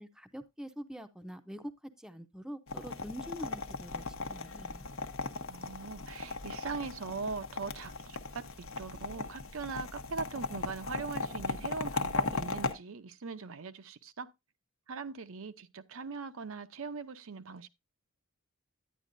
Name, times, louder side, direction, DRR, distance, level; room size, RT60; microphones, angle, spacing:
voice 1, 0.0-1.7 2.0-4.9, equal, 5° right, 0.7 m, -45 dB
sound 1, 2.7-12.7, left 3 dB, 65° left, 1.0 m, -37 dB
voice 2, 5.5-8.4 8.8-14.3 14.9-17.7, right 4 dB, 70° right, 0.7 m, -41 dB
10.0 x 10.0 x 2.6 m
head